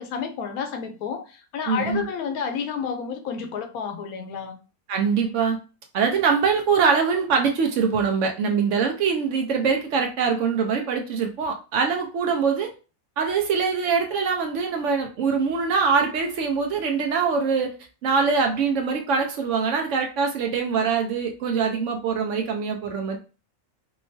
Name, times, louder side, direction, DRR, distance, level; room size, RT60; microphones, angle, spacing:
voice 1, 0.0-4.6, left 6 dB, 85° left, 6 dB, 1.1 m, -30 dB
voice 2, 1.7-2.0 4.9-5.6 5.9-12.7 13.2-17.7 18.0-23.2, right 5 dB, 70° right, 3 dB, 0.8 m, -23 dB
2.9 x 2.3 x 2.5 m, 0.33 s
omnidirectional pair, 1.5 m